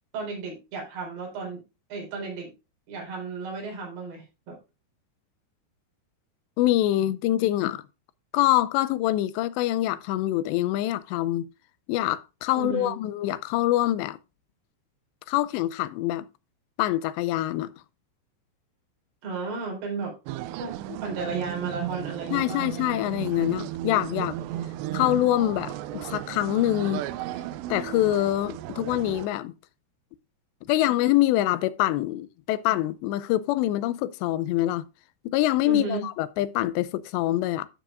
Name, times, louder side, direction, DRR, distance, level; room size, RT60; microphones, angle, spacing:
voice 1, 0.1-1.6 1.9-2.5 2.9-4.6 12.5-12.9 19.2-20.2 20.6-20.7 21.0-22.6 35.7-36.1, right 4 dB, 70° right, 6.0 m, -33 dB
voice 2, 6.6-7.8 8.3-11.5 11.9-14.2 15.3-16.3 16.8-17.7 20.9-21.0 22.3-24.4 24.9-27.0 27.7-29.5 30.7-34.9 35.3-37.7, left 14 dB, 90° left, 2.8 m, -25 dB
sound 1, 20.3-29.3, right 13 dB, 85° right, 2.8 m, -35 dB
12.0 x 7.7 x 2.5 m
omnidirectional pair, 4.9 m